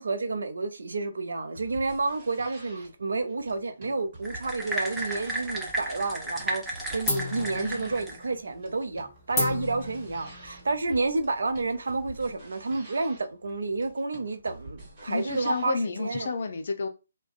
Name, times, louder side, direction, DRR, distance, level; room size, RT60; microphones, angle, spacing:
voice 1, 0.0-16.3, right 3 dB, 65° right, 0.4 m, -30 dB
sound 1, 1.4-15.7, right 2 dB, 35° right, 1.3 m, -48 dB
sound 2, 4.2-8.3, right 1 dB, 5° right, 0.6 m, -33 dB
sound 3, 5.1-6.0 6.3-6.7 7.0-12.2, left 2 dB, 10° left, 1.0 m, -34 dB
voice 2, 7.4-8.0 15.1-16.9, left 4 dB, 50° left, 0.5 m, -31 dB
2.4 x 2.1 x 2.4 m
figure-of-eight pair, 145°, 0 cm